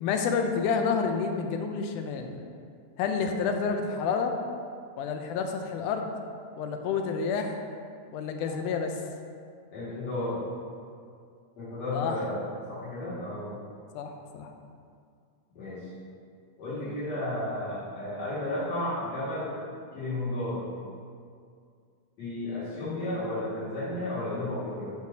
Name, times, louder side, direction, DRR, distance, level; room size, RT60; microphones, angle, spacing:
voice 1, 0.0-2.5 3.0-4.3 5.0-6.1 6.6-7.6 8.1-8.9 11.9-12.2 14.0-14.5 16.9-17.0 22.8-23.0, left 5 dB, 85° left, 4 dB, 2.1 m, -29 dB
voice 2, 9.7-10.4 11.6-12.4 12.7-13.5 15.5-15.8 16.6-19.5 19.9-20.6 22.2-24.9, left 1 dB, 60° left, -12 dB, 3.1 m, -33 dB
9.9 x 6.5 x 2.8 m, 2.2 s
omnidirectional pair, 3.6 m